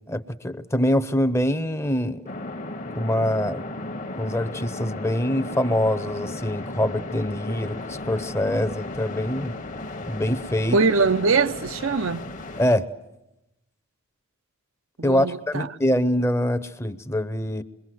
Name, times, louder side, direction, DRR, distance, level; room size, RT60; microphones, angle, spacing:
voice 1, 0.1-2.2 3.0-3.6 4.2-9.6 10.1-10.8 12.6-12.8 15.0-17.6, left 1 dB, 10° left, 0.8 m, -24 dB
sound 1, 2.3-12.8, left 2 dB, 35° left, 1.2 m, -35 dB
voice 2, 10.7-12.3 15.0-15.7, right 4 dB, 70° right, 0.8 m, -22 dB
27.0 x 23.0 x 7.8 m
head